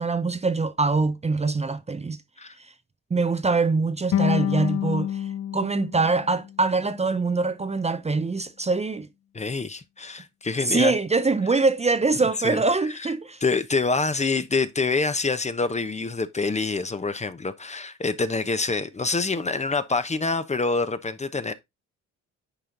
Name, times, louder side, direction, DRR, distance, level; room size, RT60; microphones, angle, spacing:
voice 1, 0.0-2.2 2.6-2.7 3.1-9.1 10.6-13.4, right 3 dB, 20° right, 0.7 m, -24 dB
sound 1, 4.1-7.2, left 10 dB, 50° left, 0.6 m, -28 dB
voice 2, 9.3-10.9 12.4-13.1 13.4-21.5, left 3 dB, 20° left, 0.9 m, -26 dB
10.0 x 4.4 x 3.9 m
cardioid pair, 90°, 30 cm